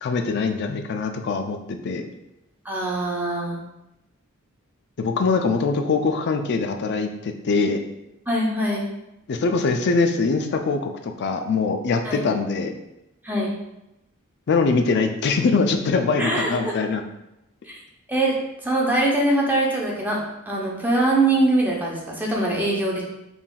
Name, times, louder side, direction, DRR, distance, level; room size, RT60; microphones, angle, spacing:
voice 1, 0.0-2.1 5.0-7.8 9.3-12.7 14.5-17.0, left 4 dB, 55° left, 5 dB, 0.4 m, -23 dB
voice 2, 2.6-3.6 8.3-8.9 12.0-12.2 13.2-13.6 16.2-16.7 17.7-17.8 18.1-18.4 18.6-20.2 20.5-23.0, right 1 dB, 10° right, -3 dB, 0.7 m, -22 dB
5.6 x 2.6 x 2.3 m, 0.90 s
head